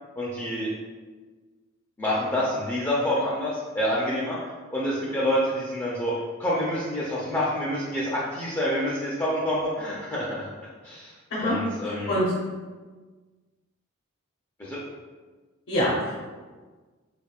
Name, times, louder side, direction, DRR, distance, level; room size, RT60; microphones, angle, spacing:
voice 1, 0.2-0.7 2.0-4.4 4.7-6.1 6.4-10.5 10.8-11.1 11.4-12.2 14.6-14.8, equal, 15° left, -7 dB, 0.4 m, -27 dB
voice 2, 11.8-12.3 15.7-16.2, equal, 55° left, -6 dB, 0.8 m, -25 dB
3.5 x 3.4 x 2.4 m, 1.4 s
head